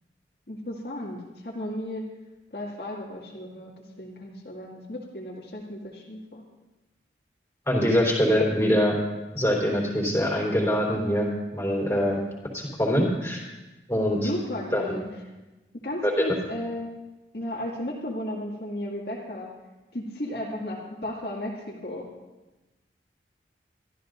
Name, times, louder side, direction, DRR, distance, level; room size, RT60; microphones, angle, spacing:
voice 1, 0.5-2.0 2.5-6.4 14.1-15.1 15.8-16.9 17.3-19.5 19.9-22.1, left 1 dB, 60° left, -4 dB, 2.3 m, -34 dB
voice 2, 7.7-9.0 9.3-12.2 12.5-13.4 13.9-14.3 14.7-14.9, equal, 15° left, -3 dB, 3.8 m, -24 dB
24.0 x 14.0 x 2.6 m, 1.1 s
head